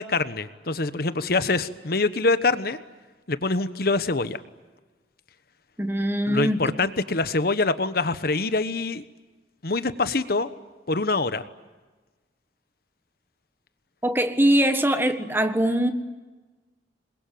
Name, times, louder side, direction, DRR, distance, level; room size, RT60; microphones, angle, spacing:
voice 1, 0.0-2.8 3.3-4.4 6.3-9.0 9.6-10.5 10.9-11.4, left 3 dB, 55° left, 12 dB, 1.2 m, -24 dB
voice 2, 5.8-6.7 14.0-15.9, right 1 dB, 10° right, 9 dB, 1.6 m, -22 dB
27.5 x 22.0 x 9.3 m, 1.2 s
head